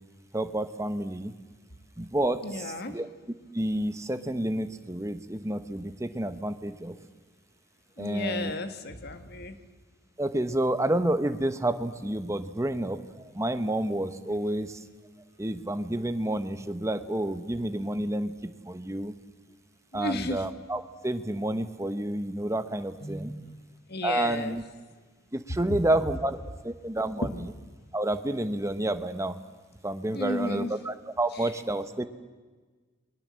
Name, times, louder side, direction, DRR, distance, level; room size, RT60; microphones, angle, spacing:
voice 1, 0.3-1.3 2.0-3.1 3.5-7.0 8.0-8.5 10.2-14.8 15.4-19.1 19.9-23.3 24.0-24.6 25.3-27.3 27.9-29.4 29.8-32.0, right 1 dB, 15° right, 10 dB, 1.1 m, -29 dB
voice 2, 2.4-3.0 8.0-9.6 19.9-20.5 23.0-23.5 23.9-24.6 25.7-25.8 27.2-27.3 30.1-30.7 31.3-31.5, left 1 dB, 55° left, 9 dB, 1.8 m, -33 dB
29.5 x 22.0 x 7.6 m, 1.4 s
head